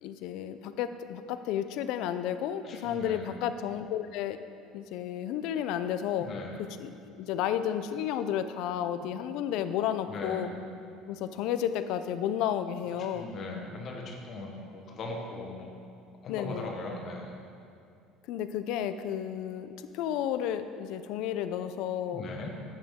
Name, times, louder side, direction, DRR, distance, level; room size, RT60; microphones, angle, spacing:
voice 1, 0.0-4.4 4.7-6.3 6.6-6.9 7.2-10.5 11.1-13.3 16.3-16.7 18.3-22.3, left 10 dB, 55° left, 10 dB, 0.4 m, -32 dB
voice 2, 2.6-3.3 6.2-6.6 10.1-10.5 13.0-15.8 16.2-17.3 22.1-22.5, left 3 dB, 30° left, 1 dB, 1.1 m, -39 dB
10.0 x 8.2 x 3.6 m, 2.5 s
cardioid pair, 180°, 0 cm